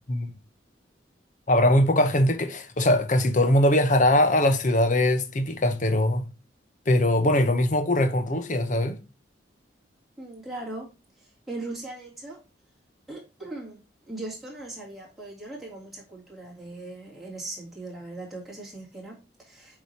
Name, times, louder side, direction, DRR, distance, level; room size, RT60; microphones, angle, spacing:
voice 1, 1.5-6.3 6.9-9.0, left 1 dB, 40° left, 0.8 m, -21 dB
voice 2, 10.2-10.9 11.2-12.4 13.1-13.8 14.1-19.8, right 2 dB, ahead, 2.8 m, -39 dB
7.0 x 4.9 x 2.8 m
head